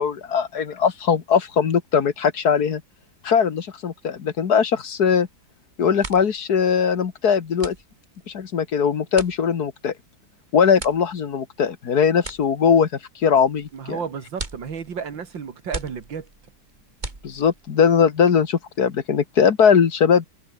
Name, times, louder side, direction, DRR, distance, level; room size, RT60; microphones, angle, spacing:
voice 1, 0.0-2.8 3.2-5.3 5.8-7.8 8.3-9.9 10.5-12.9 13.2-14.0 17.2-20.3, left 7 dB, 60° left, 1.9 m, -20 dB
sound 1, 5.3-5.6 5.8-17.8, right 3 dB, 25° right, 2.4 m, -40 dB
voice 2, 13.7-16.3, right 6 dB, 85° right, 2.8 m, -32 dB
omnidirectional pair, 2.0 m